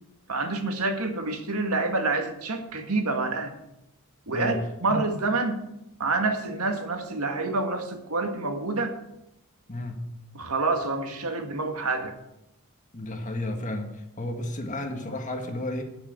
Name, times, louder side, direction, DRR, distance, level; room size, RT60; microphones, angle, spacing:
voice 1, 0.3-3.5 4.3-4.5 4.8-5.6 6.0-8.9 10.3-12.1, right 3 dB, 85° right, 5 dB, 1.8 m, -27 dB
voice 2, 9.7-10.0 12.9-13.9 14.2-15.8, left 1 dB, 35° left, 4 dB, 1.6 m, -32 dB
9.5 x 7.0 x 8.4 m, 0.86 s
head